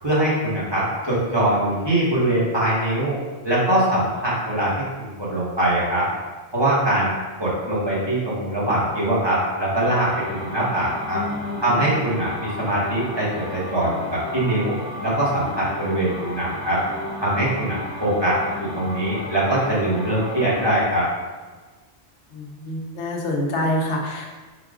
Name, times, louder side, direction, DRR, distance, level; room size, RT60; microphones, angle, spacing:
voice 1, 0.0-3.2 3.4-6.1 6.5-11.2 11.6-14.7 15.0-16.8 17.2-21.1, right 1 dB, 25° right, -8 dB, 1.2 m, -22 dB
sound 1, 9.8-20.8, left 1 dB, 20° left, 0.7 m, -34 dB
voice 2, 11.1-11.8 22.3-24.2, left 1 dB, 90° left, -1 dB, 1.1 m, -27 dB
4.1 x 2.4 x 4.8 m, 1.3 s
omnidirectional pair, 1.1 m